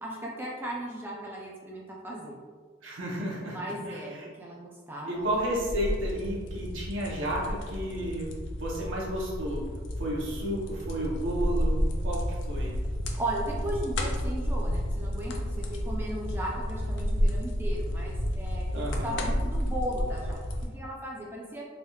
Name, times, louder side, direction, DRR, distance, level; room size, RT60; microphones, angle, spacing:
voice 1, 0.0-2.4 3.4-5.3 13.2-21.7, right 1 dB, 10° right, -3 dB, 0.3 m, -36 dB
voice 2, 2.8-3.6 3.9-4.3 5.0-8.3 8.6-9.6 10.0-12.8 18.7-19.2, right 1 dB, 85° right, -3 dB, 0.8 m, -32 dB
sound 1, 5.2-20.7, equal, 70° left, 0.4 m, -31 dB
3.2 x 2.7 x 2.3 m, 1.5 s
head